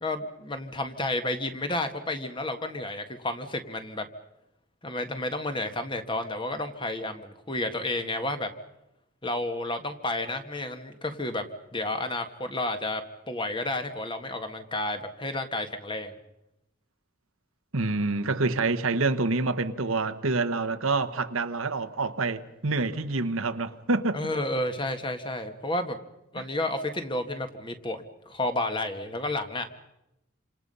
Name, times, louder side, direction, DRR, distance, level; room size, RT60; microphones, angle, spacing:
voice 1, 0.0-4.1 4.8-8.5 9.2-11.4 11.7-13.0 13.3-16.1 24.1-26.0 26.3-29.7, left 1 dB, 25° left, 1.6 m, -31 dB
voice 2, 17.7-24.2 26.4-26.5, right 3 dB, 75° right, 1.2 m, -27 dB
27.5 x 26.5 x 5.5 m
head